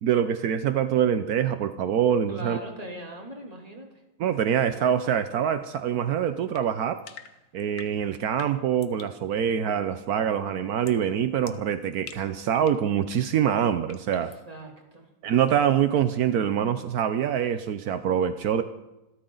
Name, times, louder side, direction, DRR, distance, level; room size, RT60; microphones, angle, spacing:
voice 1, 0.0-2.6 4.2-7.0 7.5-14.3 15.2-18.6, right 9 dB, 80° right, 10 dB, 1.3 m, -25 dB
voice 2, 2.3-4.0 14.1-15.1, right 1 dB, 25° right, 1 dB, 2.9 m, -40 dB
sound 1, 6.5-9.2 10.8-11.1 11.4-12.9 13.9-14.4, left 7 dB, 60° left, 1.3 m, -47 dB
27.0 x 13.0 x 3.9 m, 0.98 s
omnidirectional pair, 1.6 m